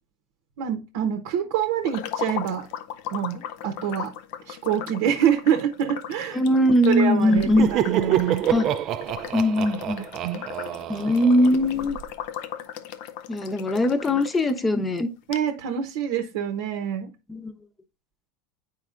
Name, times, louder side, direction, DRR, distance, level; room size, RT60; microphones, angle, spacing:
voice 1, 0.6-2.7 3.1-4.1 4.5-6.4 6.9-8.4 10.2-10.5 15.3-17.1, right 9 dB, 70° right, 0.8 m, -26 dB
sound 1, 1.8-14.6 15.0-15.1 15.3-15.4, left 10 dB, 65° left, 0.5 m, -38 dB
voice 2, 6.3-7.7 8.5-8.7 9.3-10.1 10.9-12.0 13.3-15.1 17.3-17.5, left 1 dB, 15° left, 0.9 m, -21 dB
Laughter, 7.3-12.0, right 11 dB, 45° right, 0.4 m, -27 dB
9.0 x 4.5 x 2.5 m
supercardioid pair, 110°, 0 cm